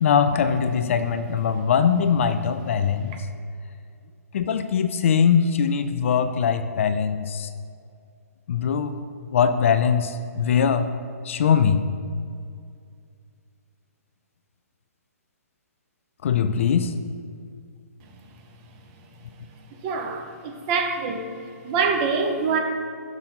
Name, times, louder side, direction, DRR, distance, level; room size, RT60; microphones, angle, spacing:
voice 1, 0.0-3.1 4.3-7.5 8.5-8.9 9.3-10.9 11.3-11.8 16.2-16.9, left 7 dB, 50° left, 9 dB, 0.4 m, -21 dB
voice 2, 19.8-21.3 21.6-22.6, right 5 dB, 30° right, 4 dB, 0.8 m, -25 dB
6.0 x 3.8 x 5.7 m, 2.3 s
figure-of-eight pair, 130°, 9 cm